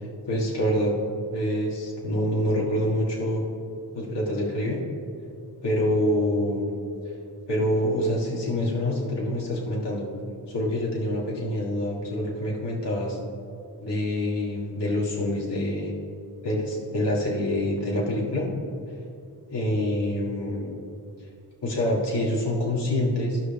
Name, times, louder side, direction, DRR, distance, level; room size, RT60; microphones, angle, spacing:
voice 1, 0.3-1.0 1.3-3.4 3.9-4.8 5.6-6.8 7.5-10.1 10.5-13.2 13.8-15.9 16.4-18.5 19.5-20.8 21.6-23.4, left 1 dB, 75° left, -4 dB, 1.9 m, -26 dB
15.5 x 5.9 x 3.4 m, 2.4 s
wide cardioid pair, 130°, 42 cm